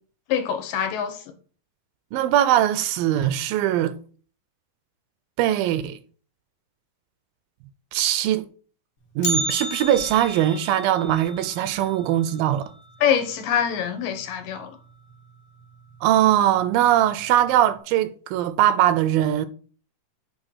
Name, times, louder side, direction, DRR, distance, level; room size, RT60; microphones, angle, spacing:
voice 1, 0.3-1.2 13.0-14.7, left 8 dB, 70° left, 2.6 m, -24 dB
voice 2, 2.1-4.0 5.4-6.0 7.9-8.5 9.2-12.6 16.0-19.5, right 12 dB, 80° right, 2.3 m, -21 dB
Bell, 9.2-13.3 13.6-13.7 14.2-14.3 15.1-15.2 15.9-16.2 16.6-16.7, right 1 dB, 45° left, 1.9 m, -32 dB
8.1 x 3.9 x 5.6 m
omnidirectional pair, 4.2 m